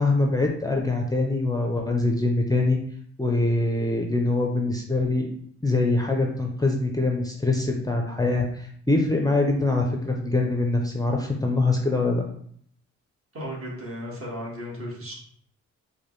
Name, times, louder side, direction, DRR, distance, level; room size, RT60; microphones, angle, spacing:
voice 1, 0.0-2.8 3.2-5.3 5.6-12.2, left 2 dB, 10° left, 1 dB, 0.5 m, -24 dB
voice 2, 13.3-15.1, equal, 45° right, -3 dB, 1.5 m, -35 dB
4.8 x 2.2 x 3.1 m, 0.63 s
cardioid pair, 85°, 30 cm